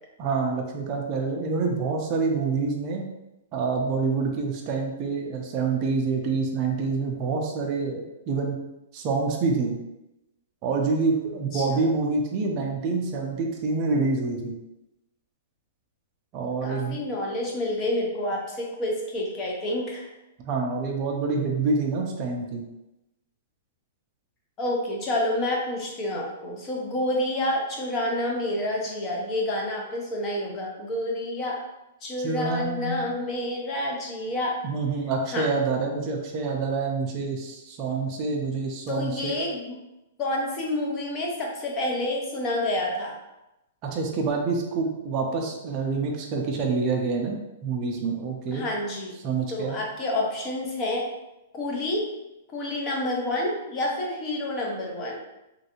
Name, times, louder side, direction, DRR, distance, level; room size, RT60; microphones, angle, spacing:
voice 1, 0.2-3.0 3.5-8.6 8.9-9.8 10.6-14.5 16.3-17.0 20.5-22.6 32.2-33.1 34.6-39.4 43.8-48.6 49.2-49.8, right 4 dB, 25° right, 0 dB, 0.4 m, -27 dB
voice 2, 11.5-11.9 16.6-20.1 24.6-31.6 32.0-34.6 35.3-35.5 38.9-39.8 40.2-43.2 48.5-49.2 49.5-51.1 51.5-52.1 52.5-55.2, left 1 dB, 20° left, -1 dB, 0.6 m, -28 dB
3.1 x 2.6 x 2.8 m, 0.94 s
hypercardioid pair, 165°, 0 cm